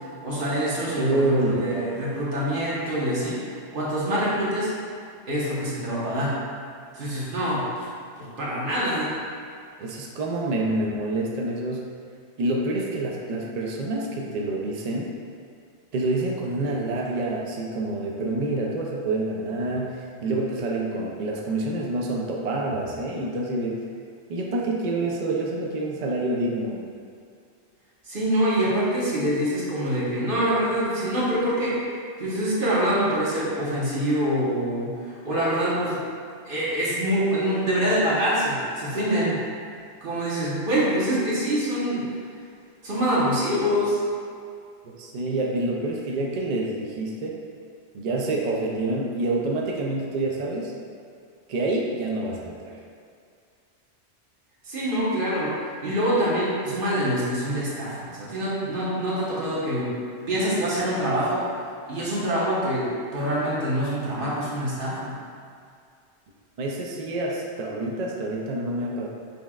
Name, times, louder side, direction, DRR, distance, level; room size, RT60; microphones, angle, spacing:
voice 1, 0.2-4.7 5.3-6.4 6.9-7.9 8.2-9.1 28.0-31.8 32.2-36.0 36.4-39.4 40.0-42.1 42.8-44.0 54.6-55.5 55.8-59.9 60.3-61.4 61.9-65.1, equal, 50° right, -7 dB, 1.1 m, -25 dB
voice 2, 1.0-1.9 9.8-11.9 12.4-15.1 15.9-23.8 24.3-26.8 44.8-47.4 47.9-50.7 51.5-52.8 66.6-69.1, right 2 dB, 75° right, -1 dB, 0.3 m, -27 dB
5.4 x 3.1 x 2.3 m, 2.3 s
omnidirectional pair, 1.2 m